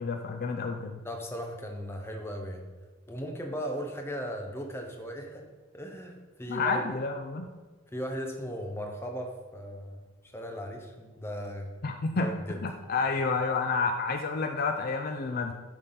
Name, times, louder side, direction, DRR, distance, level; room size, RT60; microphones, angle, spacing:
voice 1, 0.0-1.0 6.5-7.5 11.8-12.3 12.6-15.5, left 4 dB, 45° left, 5 dB, 0.5 m, -29 dB
voice 2, 1.0-2.6 3.1-5.4 5.7-6.9 7.9-10.0 10.3-11.7 12.1-12.8, equal, 10° left, 2 dB, 0.9 m, -37 dB
10.5 x 3.6 x 5.7 m, 1.3 s
head